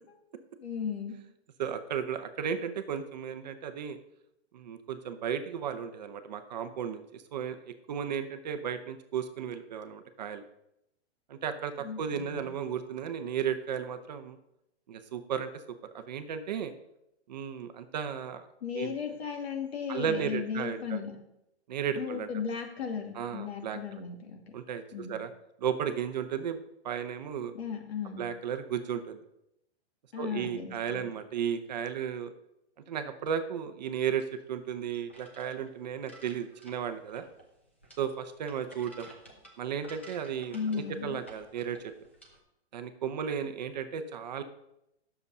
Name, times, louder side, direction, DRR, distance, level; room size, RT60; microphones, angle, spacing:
voice 1, 0.6-1.2 11.8-12.5 18.6-21.2 22.0-24.4 24.9-25.2 27.5-28.2 30.1-31.1 40.5-41.2, left 6 dB, 65° left, 3 dB, 2.4 m, -36 dB
voice 2, 1.6-4.0 4.5-10.4 11.3-14.4 14.9-15.5 15.9-16.7 17.3-18.5 18.7-19.0 19.9-21.0 21.7-22.3 23.1-24.0 24.5-25.3 25.6-26.6 26.8-27.5 28.2-29.2 30.2-32.3 32.9-37.2 38.0-39.1 39.6-41.9 42.7-44.4, right 8 dB, 40° right, 8 dB, 0.8 m, -34 dB
sound 1, 33.9-42.4, right 1 dB, 10° left, 0.3 m, -54 dB
11.0 x 6.9 x 5.4 m, 0.84 s
hypercardioid pair, 170°, 34 cm